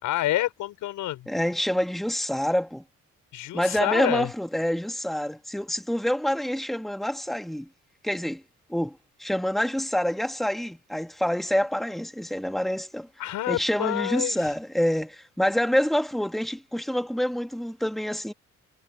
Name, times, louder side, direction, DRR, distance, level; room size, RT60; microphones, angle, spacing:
voice 1, 0.0-1.3 3.3-4.3 13.2-14.5, left 14 dB, 90° left, 5.7 m, -28 dB
voice 2, 1.3-2.8 3.5-7.7 8.0-8.4 8.7-13.1 13.5-18.3, equal, ahead, 2.3 m, -27 dB
cardioid pair, 90°, 30 cm